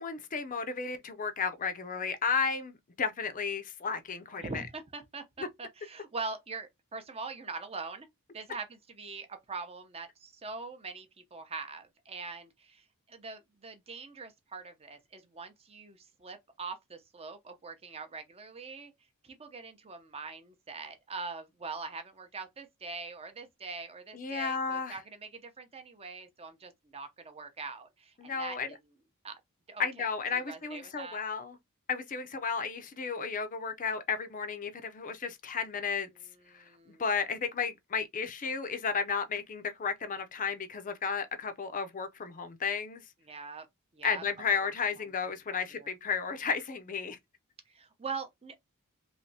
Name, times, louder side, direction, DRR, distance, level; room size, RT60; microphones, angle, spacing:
voice 1, 0.0-4.6 5.4-5.5 24.1-25.0 28.2-28.7 29.8-31.6 31.9-36.1 36.5-36.7 37.0-43.0 44.0-47.2, left 5 dB, 40° left, 0.5 m, -33 dB
voice 2, 4.4-8.1 8.3-18.9 19.2-28.8 29.2-29.4 29.7-29.9 30.3-31.2 36.5-37.0 43.3-43.7 43.9-44.7 45.7-45.9 47.7-48.6, right 4 dB, 30° right, 0.7 m, -43 dB
3.3 x 3.0 x 2.7 m
head